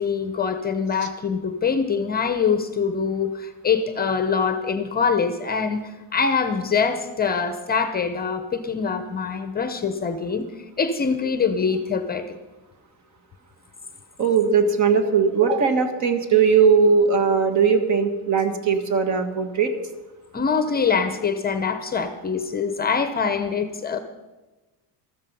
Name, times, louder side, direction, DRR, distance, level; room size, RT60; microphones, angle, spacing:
voice 1, 0.0-5.8 6.1-10.4 10.8-12.3 20.3-24.0, left 5 dB, 25° left, 9 dB, 0.7 m, -24 dB
voice 2, 14.2-19.7, right 5 dB, 45° right, 7 dB, 1.6 m, -19 dB
13.5 x 13.5 x 5.4 m, 1.1 s
cardioid pair, 155°, 40 cm